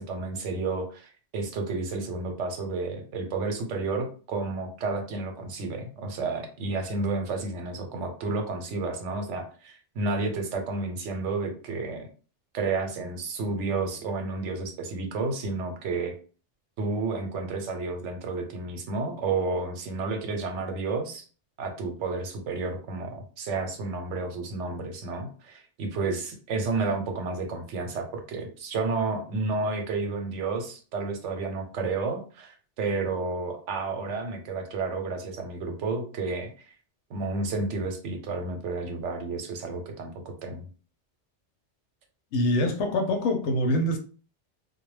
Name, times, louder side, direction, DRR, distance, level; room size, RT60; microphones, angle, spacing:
voice 1, 0.0-12.1 12.5-16.1 16.8-21.2 21.6-36.7 37.1-40.6, right 3 dB, 80° right, 0.9 m, -31 dB
voice 2, 42.3-44.0, left 1 dB, 75° left, 0.9 m, -24 dB
2.2 x 2.1 x 3.1 m
omnidirectional pair, 1.2 m